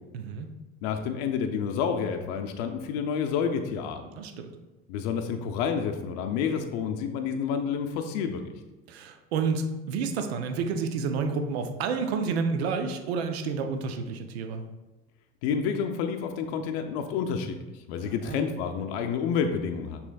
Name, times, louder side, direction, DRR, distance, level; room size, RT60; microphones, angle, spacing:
voice 1, 0.1-0.5 4.2-4.5 8.9-14.6 18.0-18.4, right 5 dB, 90° right, 6 dB, 0.5 m, -30 dB
voice 2, 0.8-4.1 4.9-8.4 15.4-20.0, left 6 dB, 75° left, 5 dB, 0.5 m, -29 dB
6.1 x 3.1 x 2.3 m, 1.1 s
supercardioid pair, 85°, 31 cm